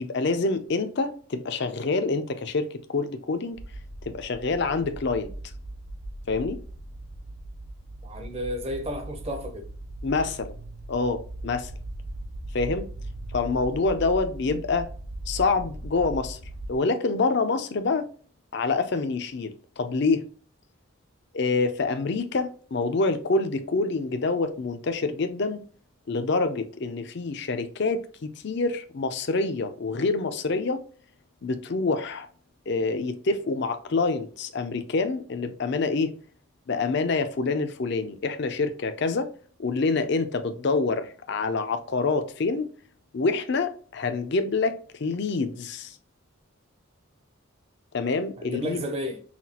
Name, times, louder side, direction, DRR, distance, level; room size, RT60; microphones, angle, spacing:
voice 1, 0.0-3.6 4.1-5.3 6.3-6.6 10.0-10.6 10.9-11.7 12.5-12.9 13.3-14.9 15.3-16.4 16.7-18.1 18.5-20.3 21.3-25.6 26.1-30.8 31.4-32.3 32.7-36.1 36.7-39.3 39.6-42.7 43.1-46.0 47.9-48.8, left 3 dB, 50° left, 0.5 m, -26 dB
sound 1, 3.5-16.8, right 1 dB, 70° right, 0.8 m, -39 dB
voice 2, 8.0-9.7 48.4-49.2, equal, 30° right, 0.7 m, -33 dB
5.7 x 2.4 x 2.8 m
head